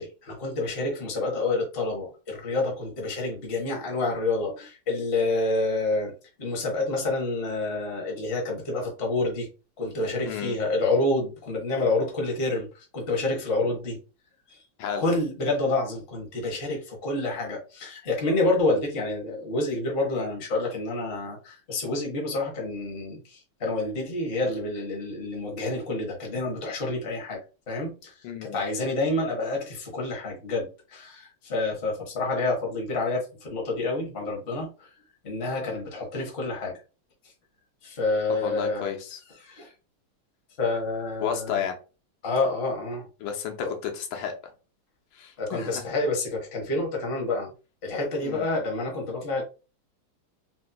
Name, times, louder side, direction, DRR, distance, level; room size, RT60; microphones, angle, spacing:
voice 1, 0.0-6.1 6.4-9.5 9.8-14.0 15.0-27.4 27.7-28.1 28.4-34.9 35.2-36.7 37.8-38.9 39.4-39.7 40.6-41.6 42.2-43.1 43.6-43.7 45.4-47.5 47.8-49.4, left 2 dB, 40° left, 0.9 m, -28 dB
voice 2, 10.2-10.6 14.8-15.0 28.2-28.6 38.4-39.2 41.2-41.8 43.2-44.5 45.1-45.8 48.2-48.5, left 8 dB, 85° left, 1.6 m, -32 dB
4.1 x 2.6 x 2.2 m
omnidirectional pair, 2.4 m